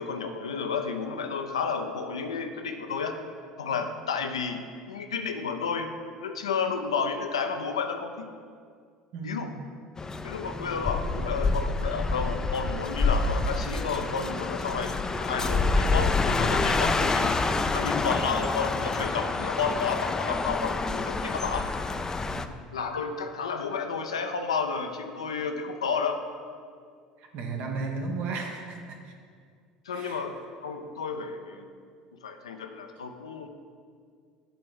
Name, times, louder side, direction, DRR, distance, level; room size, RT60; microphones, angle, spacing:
voice 1, 0.0-3.2 3.6-4.6 4.9-5.9 6.2-8.3 9.2-9.5 10.2-17.4 17.7-21.7 22.7-26.2 29.9-31.7 32.2-33.5, left 5 dB, 85° left, 6 dB, 0.5 m, -31 dB
voice 2, 9.1-9.6 17.0-17.9 22.2-22.5 27.2-29.1 29.9-30.3, right 4 dB, 55° right, 2 dB, 1.1 m, -36 dB
sound 1, 10.0-22.5, left 3 dB, 20° left, 0.4 m, -27 dB
7.8 x 3.5 x 6.1 m, 2.1 s
hypercardioid pair, 70°, 3 cm